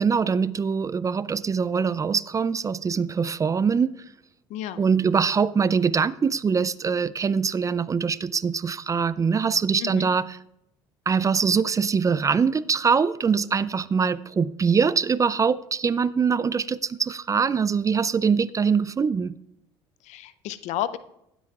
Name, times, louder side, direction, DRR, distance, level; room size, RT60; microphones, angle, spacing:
voice 1, 0.0-3.9 4.8-10.3 11.1-19.3, right 6 dB, 25° right, 0.4 m, -23 dB
voice 2, 9.8-10.1 20.0-21.0, left 12 dB, 65° left, 0.6 m, -31 dB
19.0 x 8.0 x 2.4 m
supercardioid pair, 75°, 13 cm